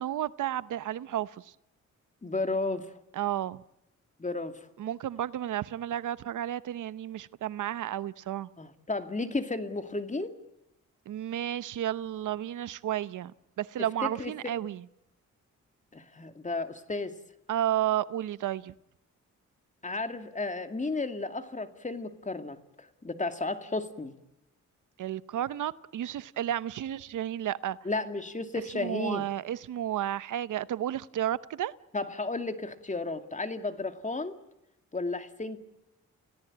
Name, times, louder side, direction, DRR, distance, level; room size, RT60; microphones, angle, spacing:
voice 1, 0.0-1.5 3.1-3.6 4.8-8.5 11.1-13.3 13.6-14.8 17.5-18.7 25.0-27.8 28.7-31.7, right 11 dB, 80° right, 0.8 m, -32 dB
voice 2, 2.2-2.9 4.2-4.7 8.6-10.4 14.0-14.5 15.9-17.2 19.8-24.1 27.8-29.2 31.9-34.4 34.9-35.6, left 3 dB, 25° left, 2.4 m, -33 dB
29.5 x 17.0 x 8.7 m
cardioid pair, 85°, 30 cm